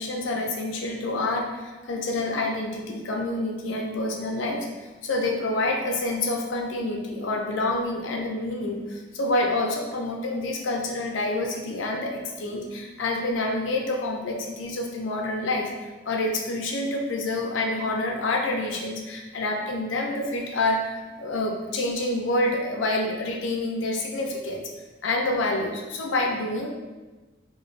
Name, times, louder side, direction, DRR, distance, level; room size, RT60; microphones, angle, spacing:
voice 1, 0.0-4.7 5.0-15.7 16.1-24.6 25.0-26.7, left 2 dB, 85° left, 1 dB, 0.4 m, -27 dB
2.4 x 2.1 x 3.1 m, 1.2 s
head